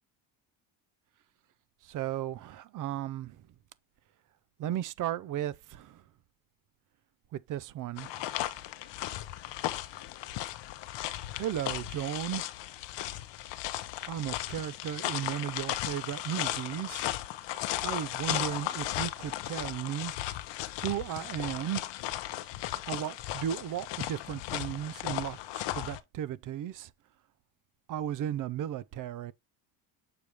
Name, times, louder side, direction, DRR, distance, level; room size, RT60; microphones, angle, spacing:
voice 1, 1.9-3.4 4.6-6.0 7.3-8.1 11.4-12.4 14.1-17.0 17.8-20.1 20.8-21.9 22.9-25.4 25.7-26.9 27.9-29.3, right 11 dB, 45° right, 0.5 m, -35 dB
sound 1, 8.0-26.0, left 14 dB, 65° left, 0.8 m, -36 dB
6.8 x 4.9 x 2.9 m
cardioid pair, 140°, 47 cm